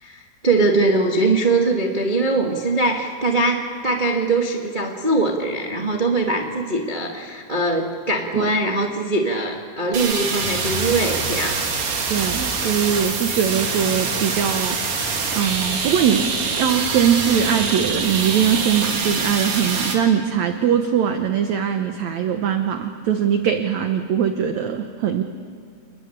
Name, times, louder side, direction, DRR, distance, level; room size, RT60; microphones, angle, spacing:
voice 1, 0.0-11.6 13.3-13.4, right 2 dB, 45° right, 1 dB, 0.6 m, -22 dB
sound 1, 9.9-19.9, right 5 dB, 85° right, 4.9 m, -25 dB
Bus / Engine, 10.4-18.4, equal, 10° left, 4.3 m, -37 dB
voice 2, 12.1-14.8 15.3-16.3 16.6-25.2, right 8 dB, 65° right, 6 dB, 1.8 m, -21 dB
29.5 x 19.5 x 10.0 m, 2.2 s
omnidirectional pair, 4.5 m